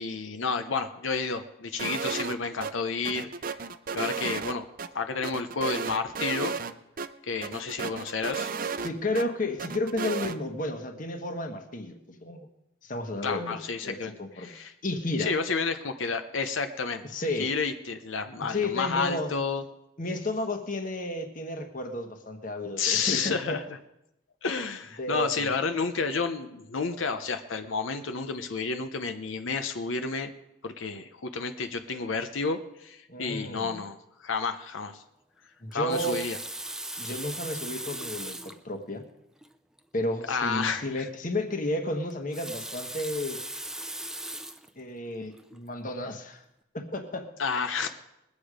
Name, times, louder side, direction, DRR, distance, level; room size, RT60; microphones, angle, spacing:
voice 1, 0.0-3.6 3.9-4.7 4.9-6.5 7.2-8.5 13.2-14.7 15.2-17.0 17.4-19.6 22.8-23.6 24.4-30.3 30.6-35.0 35.7-36.4 40.3-41.1 47.4-47.9, left 4 dB, 90° left, 7 dB, 0.9 m, -30 dB
sound 1, 1.8-2.3 2.6-2.7 3.0-4.9 5.2-6.7 7.0-7.1 7.4-9.2 9.6-10.4, right 5 dB, 45° right, 0.6 m, -33 dB
voice 2, 8.8-12.5 12.8-13.6 13.8-14.5 14.8-15.3 17.1-17.5 18.5-19.3 20.0-23.6 25.0-25.5 33.1-33.8 35.6-36.2 37.0-39.0 39.9-43.4 44.8-46.4 46.7-47.3, left 1 dB, 45° left, 5 dB, 1.4 m, -32 dB
Water tap faucet, 35.7-38.6 39.4-39.5 39.8-39.9 42.1-44.7 45.4-45.6, right 1 dB, 5° right, 0.5 m, -38 dB
21.0 x 8.4 x 5.0 m, 0.88 s
head